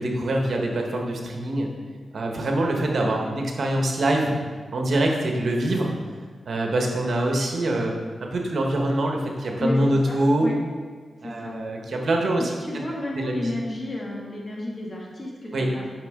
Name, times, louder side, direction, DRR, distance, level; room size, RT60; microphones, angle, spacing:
voice 1, 0.0-1.7 2.1-4.3 4.7-5.9 6.4-8.0 8.2-10.5 11.2-12.8 13.1-13.5 15.5-15.7, right 1 dB, 65° right, 1 dB, 1.3 m, -24 dB
voice 2, 10.1-10.5 11.2-11.6 12.6-15.8, left 1 dB, 35° left, -3 dB, 2.3 m, -32 dB
9.4 x 6.1 x 3.7 m, 1.5 s
cardioid pair, 65°, 0 cm